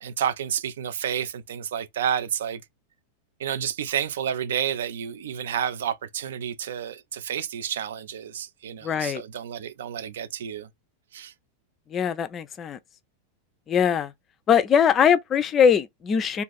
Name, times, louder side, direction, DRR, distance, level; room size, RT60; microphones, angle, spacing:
voice 1, 0.0-2.6 3.4-10.7 11.1-11.3, right 9 dB, 60° right, 0.4 m, -30 dB
voice 2, 8.8-9.2 11.9-12.8 13.7-14.1 14.5-16.4, left 7 dB, 25° left, 0.4 m, -21 dB
2.6 x 2.4 x 3.8 m
figure-of-eight pair, 90°, 0 cm